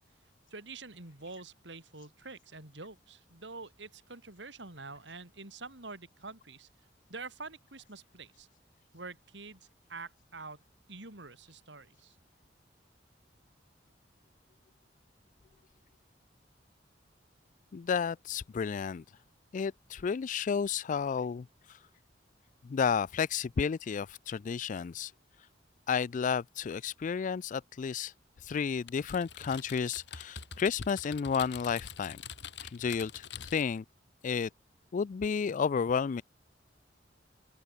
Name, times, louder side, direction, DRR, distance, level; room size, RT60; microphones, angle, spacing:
voice 1, 0.5-6.7 7.1-8.5 8.9-10.6 10.9-12.2, right 3 dB, 75° right, 4.1 m, -46 dB
voice 2, 17.7-19.0 19.5-21.5 22.6-25.1 25.9-28.1 28.4-32.2 32.6-33.8 34.2-34.5 34.9-36.2, left 6 dB, 45° left, 0.3 m, -32 dB
Typing, 28.9-33.8, left 7 dB, 70° left, 7.5 m, -45 dB
open air
head